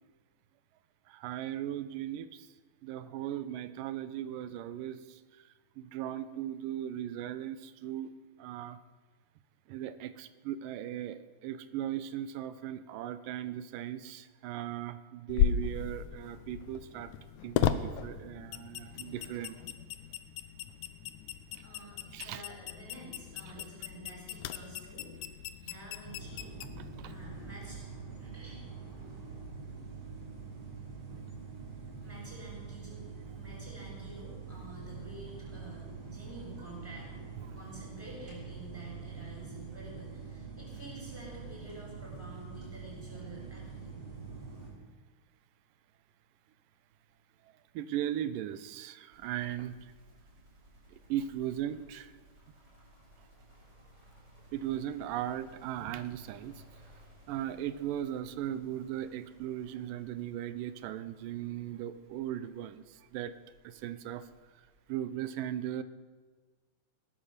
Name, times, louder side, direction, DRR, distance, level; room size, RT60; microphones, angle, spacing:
voice 1, 1.1-2.5 2.8-5.0 5.8-8.1 8.4-8.8 9.7-17.1 17.4-19.6 22.1-22.4 23.6-23.7 27.0-27.1 31.1-31.2 47.8-49.8 51.1-52.1 54.5-56.5 57.3-62.8 63.1-63.3 63.6-64.2 64.9-65.8, right 11 dB, 90° right, 13 dB, 2.4 m, -37 dB
sound 1, 15.3-27.5, left 9 dB, 75° left, 1.9 m, -36 dB
voice 2, 21.6-25.1 25.6-26.5 27.0-27.8 28.2-28.6 32.0-37.1 37.5-44.1, right 1 dB, 5° right, -4 dB, 6.8 m, -49 dB
sound 2, 26.0-44.7, right 5 dB, 40° right, 5.4 m, -45 dB
sound 3, 49.1-64.9, right 1 dB, 20° right, 5.4 m, -60 dB
19.5 x 11.0 x 6.6 m, 1.4 s
omnidirectional pair, 3.8 m